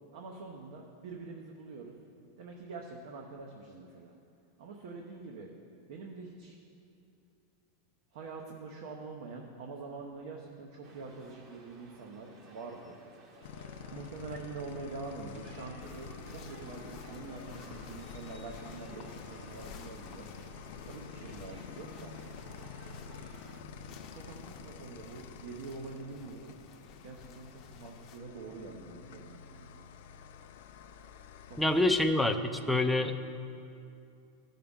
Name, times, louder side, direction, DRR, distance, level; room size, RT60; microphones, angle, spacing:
voice 1, 0.1-1.9 2.4-4.1 4.6-5.5 5.9-6.6 8.1-13.0 13.9-20.3 20.8-22.1 24.1-26.6 27.0-29.9 30.7-30.8 31.5-31.9, right 4 dB, 65° right, 1 dB, 0.8 m, -45 dB
sound 1, 10.8-23.6, right 2 dB, 40° right, 1.0 m, -55 dB
sound 2, 13.4-32.1, left 6 dB, 70° left, 0.5 m, -48 dB
sound 3, 15.8-28.2, left 5 dB, 35° left, 0.7 m, -54 dB
voice 2, 31.6-33.2, left 2 dB, ahead, 4 dB, 0.4 m, -26 dB
14.0 x 5.6 x 3.7 m, 2.6 s
supercardioid pair, 140°, 0 cm